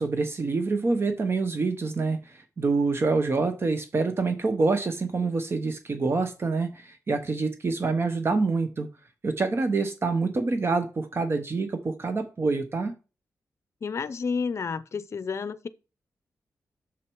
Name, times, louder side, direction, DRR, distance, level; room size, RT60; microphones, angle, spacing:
voice 1, 0.0-8.9 9.2-12.9, right 3 dB, 40° right, 0.9 m, -26 dB
voice 2, 13.8-15.7, left 5 dB, 50° left, 0.6 m, -30 dB
6.5 x 6.5 x 4.6 m
cardioid pair, 95°, 6 cm